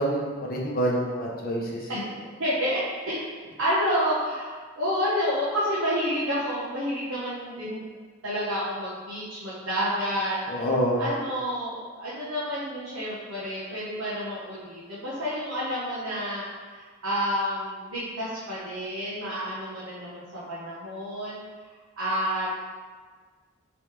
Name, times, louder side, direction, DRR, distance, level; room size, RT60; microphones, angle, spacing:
voice 1, 0.0-1.9 10.5-11.0, right 1 dB, 45° left, -2 dB, 0.6 m, -27 dB
voice 2, 2.4-2.8 3.1-3.3 3.6-7.9 8.2-10.7 11.0-21.4 22.0-22.7, equal, 80° right, -10 dB, 0.8 m, -29 dB
3.3 x 3.1 x 3.1 m, 1.5 s
head